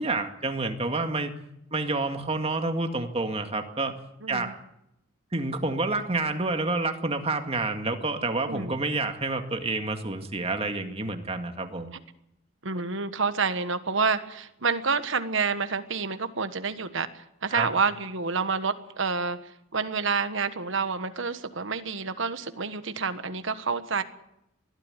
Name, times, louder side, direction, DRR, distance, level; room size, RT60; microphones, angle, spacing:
voice 1, 0.0-1.4 1.7-3.9 4.3-4.6 5.3-11.9 17.5-17.7, right 3 dB, 30° right, 6 dB, 2.0 m, -28 dB
voice 2, 4.2-4.5 8.4-8.8 12.6-24.0, right 4 dB, 65° right, 10 dB, 1.4 m, -28 dB
20.5 x 13.0 x 9.8 m, 0.81 s
head